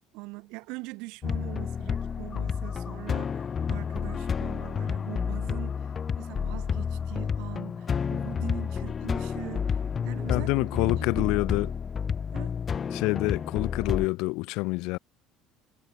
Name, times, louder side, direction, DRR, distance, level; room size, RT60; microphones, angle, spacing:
voice 1, 0.0-11.4 12.3-12.6, right 26 dB, 75° right, 4.3 m, -42 dB
sound 1, 1.2-14.1, left 6 dB, 25° left, 0.9 m, -30 dB
voice 2, 10.0-11.7 12.9-15.0, left 24 dB, 75° left, 1.3 m, -27 dB
cardioid pair, 150°, 0 cm